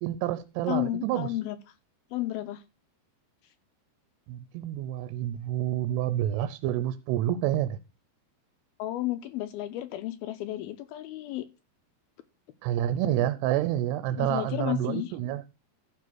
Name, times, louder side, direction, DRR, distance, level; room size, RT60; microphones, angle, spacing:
voice 1, 0.0-1.3 4.3-7.8 12.6-15.4, right 12 dB, 80° right, 2.7 m, -28 dB
voice 2, 0.7-1.6 2.1-2.6 8.8-11.5 14.2-15.2, left 15 dB, 80° left, 2.3 m, -32 dB
14.0 x 5.0 x 6.1 m
omnidirectional pair, 4.9 m